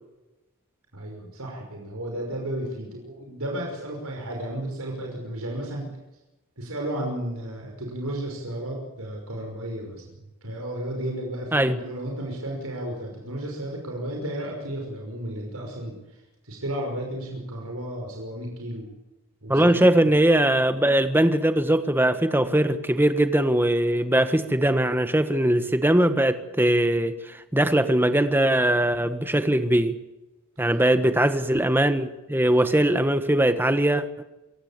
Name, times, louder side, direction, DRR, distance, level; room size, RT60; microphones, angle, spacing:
voice 1, 0.9-5.9 6.6-18.9 19.4-19.8 30.6-31.0, right 1 dB, 80° right, 5.9 m, -33 dB
voice 2, 19.5-30.0 30.6-34.2, right 1 dB, 10° right, 1.5 m, -21 dB
27.5 x 16.0 x 8.6 m
head